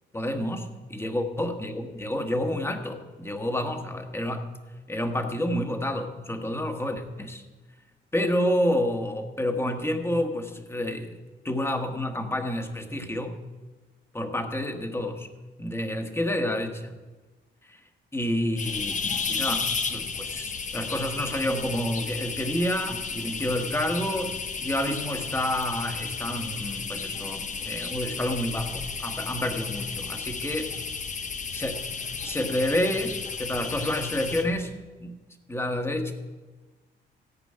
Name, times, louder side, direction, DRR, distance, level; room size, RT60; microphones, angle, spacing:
voice 1, 0.1-4.5 4.9-7.4 8.1-11.2 11.4-13.4 14.1-15.3 15.6-16.9 17.6-17.8 18.1-19.0 19.3-24.3 24.6-30.7 31.5-31.9 32.2-34.7 35.0-35.2 35.5-36.1, left 1 dB, 10° left, 5 dB, 1.4 m, -29 dB
sound 1, 18.6-34.6, left 5 dB, 40° left, 0.9 m, -33 dB
14.5 x 5.1 x 8.9 m, 1.2 s
cardioid pair, 90°, 20 cm